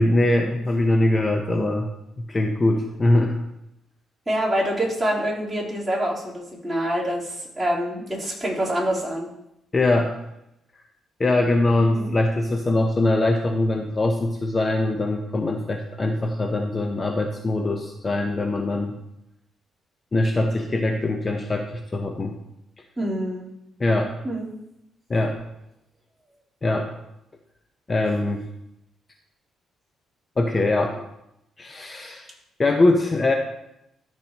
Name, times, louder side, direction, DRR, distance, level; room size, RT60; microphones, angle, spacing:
voice 1, 0.0-1.9 2.2-3.4 9.7-10.1 11.2-19.0 20.1-22.4 23.8-24.1 25.1-25.4 26.6-26.9 27.9-28.4 30.4-31.0 31.6-32.3 32.6-33.3, left 2 dB, 30° left, 4 dB, 0.8 m, -22 dB
voice 2, 4.3-9.3 11.9-12.1 23.0-23.5 24.2-24.5, equal, 10° right, -7 dB, 3.7 m, -26 dB
14.0 x 5.9 x 2.9 m, 0.83 s
cardioid pair, 90°, 0 cm